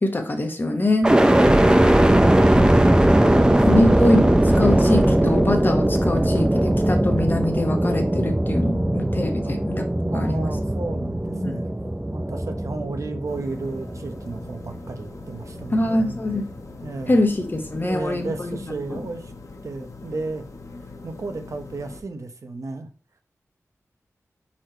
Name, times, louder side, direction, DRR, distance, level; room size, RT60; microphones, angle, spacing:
voice 1, 0.0-1.1 3.7-10.5 11.4-11.6 15.7-16.5 17.1-18.6 18.9-19.0, left 1 dB, 35° left, 5 dB, 1.2 m, -24 dB
sound 1, 1.0-15.0 15.5-16.3, right 1 dB, 15° right, 0.6 m, -19 dB
voice 2, 1.3-2.0 3.4-3.9 10.1-11.6 12.1-16.4 16.8-17.2 17.7-19.3 19.6-20.4 21.0-22.9, right 3 dB, 65° right, 6 dB, 1.0 m, -33 dB
sound 2, 13.3-22.0, left 3 dB, 65° left, 1.0 m, -42 dB
4.9 x 4.2 x 4.5 m, 0.37 s
wide cardioid pair, 95°, 6 cm